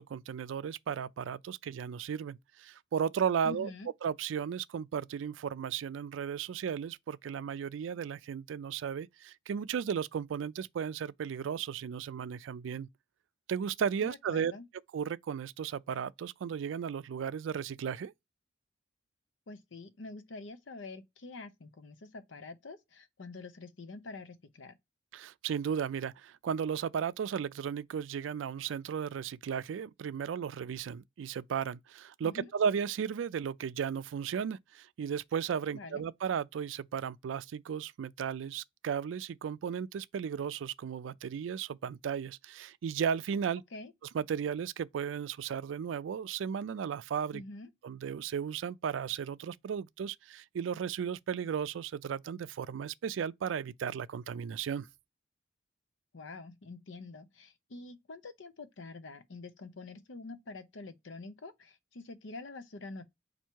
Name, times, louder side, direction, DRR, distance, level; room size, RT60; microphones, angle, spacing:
voice 1, 0.0-3.7 4.0-12.9 13.5-14.5 14.9-18.1 25.1-43.6 44.1-47.4 47.8-54.9, right 7 dB, 80° right, 0.3 m, -35 dB
voice 2, 3.4-3.9 14.0-14.7 19.5-24.7 32.2-32.5 35.7-36.0 43.7-43.9 47.3-47.7 56.1-63.0, left 3 dB, 80° left, 0.7 m, -46 dB
4.5 x 2.6 x 4.4 m
head